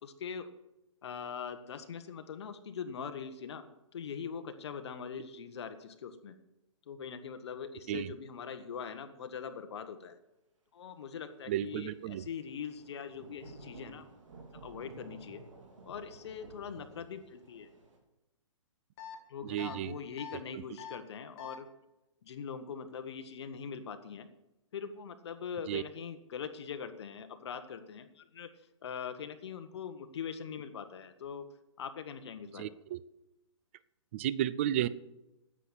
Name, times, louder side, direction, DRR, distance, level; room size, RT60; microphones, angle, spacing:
voice 1, 0.0-0.5 1.0-3.6 3.9-6.4 6.9-10.2 10.7-14.0 14.5-15.4 15.8-17.7 19.3-21.7 22.2-24.3 24.7-28.5 28.8-31.5 31.8-32.7, left 7 dB, 55° left, 8 dB, 1.3 m, -42 dB
voice 2, 11.5-12.2 19.4-19.9 25.7-25.8 32.6-33.0 34.1-34.9, right 12 dB, 25° right, 17 dB, 0.3 m, -33 dB
Thunder / Rain, 12.5-18.0, right 3 dB, 75° right, 3.7 m, -53 dB
sound 1, 19.0-19.2 19.6-19.7 20.2-20.4 20.8-20.9 21.4-21.5, left 9 dB, 30° left, 1.3 m, -44 dB
10.0 x 7.5 x 8.1 m, 0.95 s
hypercardioid pair, 160°, 17 cm